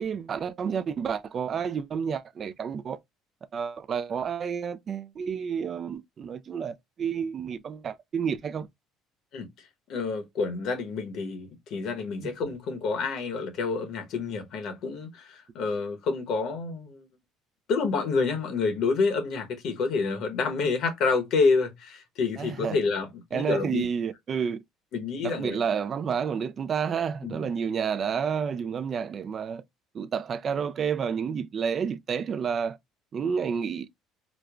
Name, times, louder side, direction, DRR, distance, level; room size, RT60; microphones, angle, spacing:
voice 1, 0.0-3.0 3.5-8.7 22.4-22.8 23.3-24.6 25.2-29.6 29.9-32.8 33.1-33.9, right 7 dB, 40° right, 0.3 m, -30 dB
voice 2, 9.9-17.1 17.7-23.9 24.9-25.6 27.2-27.5, left 4 dB, 65° left, 1.0 m, -28 dB
4.9 x 2.1 x 2.3 m
cardioid pair, 115°, 0 cm